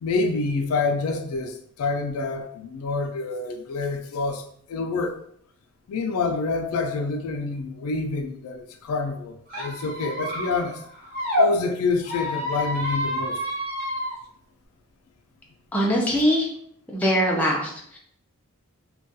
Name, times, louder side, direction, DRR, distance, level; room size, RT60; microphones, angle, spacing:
voice 1, 0.0-5.2 5.9-10.8 11.4-13.4, left 3 dB, 75° left, 4 dB, 0.3 m, -27 dB
Squeak, 9.5-11.5 12.0-14.1, left 1 dB, 40° right, 0.6 m, -28 dB
voice 2, 15.7-16.5 16.9-18.0, equal, 5° left, -3 dB, 0.4 m, -22 dB
2.2 x 2.2 x 2.7 m, 0.66 s
head